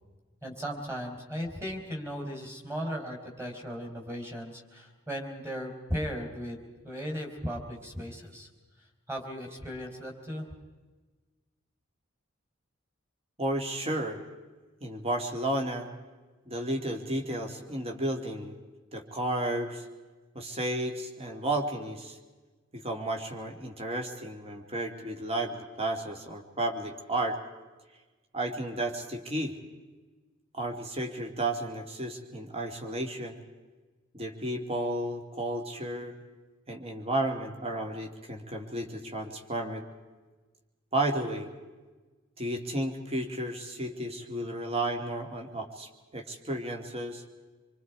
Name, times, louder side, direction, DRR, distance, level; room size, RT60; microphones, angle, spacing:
voice 1, 0.4-8.5 9.1-10.5, equal, 15° right, 2 dB, 4.1 m, -37 dB
voice 2, 13.4-14.2 14.8-15.9 16.5-18.6 18.9-19.8 20.3-22.2 22.7-27.4 28.3-29.6 30.5-33.4 34.1-36.2 36.7-39.9 40.9-41.5 42.4-47.2, right 1 dB, 30° right, 3 dB, 2.4 m, -33 dB
26.5 x 24.5 x 4.8 m, 1.3 s
head